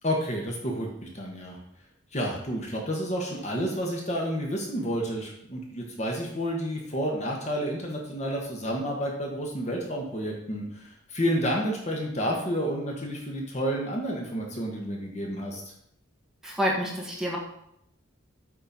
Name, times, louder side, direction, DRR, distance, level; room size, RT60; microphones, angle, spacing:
voice 1, 0.0-1.6 2.1-15.6, equal, 35° left, 0 dB, 1.3 m, -30 dB
voice 2, 16.4-17.4, equal, 5° right, -3 dB, 1.7 m, -28 dB
8.7 x 4.4 x 5.5 m, 0.74 s
head